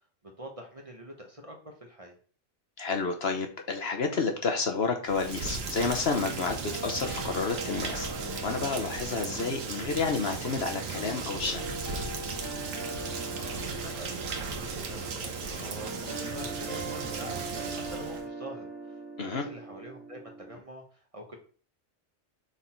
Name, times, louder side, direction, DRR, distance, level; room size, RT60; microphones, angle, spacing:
voice 1, 0.4-2.2 13.3-17.4 17.7-21.4, right 1 dB, 25° right, 1 dB, 1.2 m, -45 dB
voice 2, 2.8-8.1 8.4-11.6 19.2-19.4, left 4 dB, 55° left, 4 dB, 1.1 m, -30 dB
Rain, 5.0-18.2, right 5 dB, 85° right, 1.3 m, -36 dB
sound 1, 6.2-20.6, right 2 dB, 80° left, 2.5 m, -41 dB
6.2 x 4.1 x 4.4 m, 0.41 s
omnidirectional pair, 1.3 m